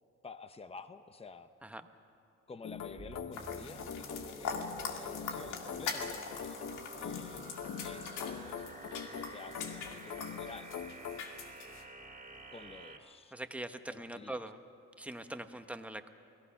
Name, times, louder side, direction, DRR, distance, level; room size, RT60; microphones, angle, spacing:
voice 1, 0.2-1.5 2.5-7.5 7.8-8.6 9.0-10.7 12.5-13.3 13.9-14.4, left 4 dB, 20° left, 10 dB, 0.9 m, -50 dB
sound 1, 2.6-11.3, left 7 dB, 65° left, 1.1 m, -44 dB
sound 2, 3.0-13.0, right 2 dB, 25° right, 2.5 m, -50 dB
sound 3, 3.3-11.8, left 5 dB, 90° left, 2.1 m, -43 dB
voice 2, 13.3-14.6 15.0-16.1, right 1 dB, 5° right, 8 dB, 1.1 m, -42 dB
29.0 x 18.5 x 5.8 m, 2.5 s
cardioid pair, 90°, 30 cm